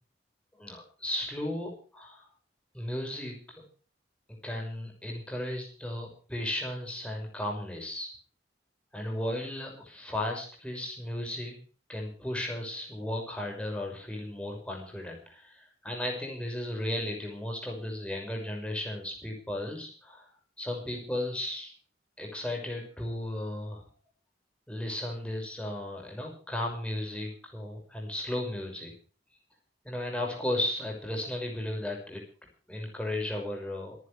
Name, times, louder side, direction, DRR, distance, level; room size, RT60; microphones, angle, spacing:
voice 1, 0.6-2.3 2.7-3.6 4.4-8.1 8.9-11.5 11.9-20.3 20.6-21.7 22.2-23.8 24.7-28.9 29.8-32.2 32.7-34.0, left 1 dB, 5° left, 0 dB, 5.9 m, -35 dB
27.0 x 11.0 x 3.3 m, 0.40 s
head